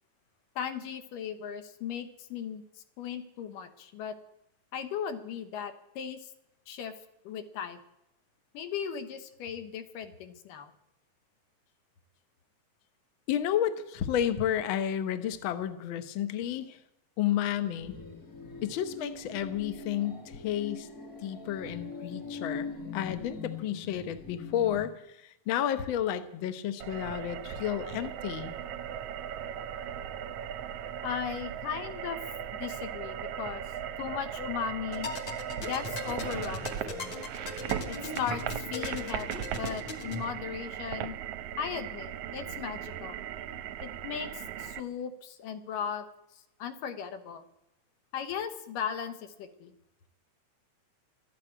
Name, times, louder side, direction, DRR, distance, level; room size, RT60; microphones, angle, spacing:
voice 1, 0.6-2.6 3.0-4.1 4.7-6.3 6.7-6.9 7.3-7.8 8.5-10.7 31.0-32.2 32.6-33.6 34.0-35.1 35.6-37.2 37.9-41.2 41.6-43.2 43.8-46.1 46.6-47.4 48.1-49.8, left 8 dB, 90° left, 9 dB, 2.8 m, -37 dB
voice 2, 13.3-16.8 17.2-18.0 18.6-20.9 21.2-28.5, left 10 dB, 75° left, 10 dB, 1.1 m, -31 dB
sound 1, 17.5-24.8, left 4 dB, 30° left, 1.9 m, -42 dB
sound 2, 26.8-44.8, right 9 dB, 75° right, 1.5 m, -38 dB
sound 3, 34.9-40.2, left 3 dB, 50° left, 1.7 m, -40 dB
13.5 x 9.8 x 8.9 m, 0.83 s
omnidirectional pair, 3.7 m